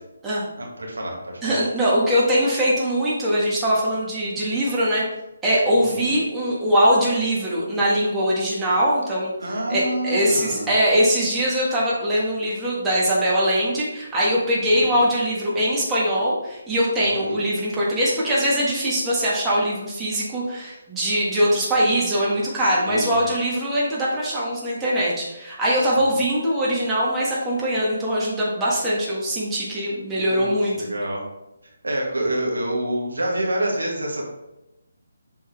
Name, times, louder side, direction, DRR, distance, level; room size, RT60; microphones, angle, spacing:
voice 1, 0.6-1.6 5.7-6.1 9.4-10.7 14.6-15.0 17.0-17.4 22.6-23.3 26.0-26.1 30.1-31.2 31.8-34.2, right 1 dB, 80° right, -1 dB, 1.8 m, -28 dB
voice 2, 1.4-5.1 5.4-30.9, equal, 10° right, -7 dB, 1.6 m, -22 dB
7.2 x 3.9 x 3.4 m, 0.92 s
figure-of-eight pair, 150°, 0 cm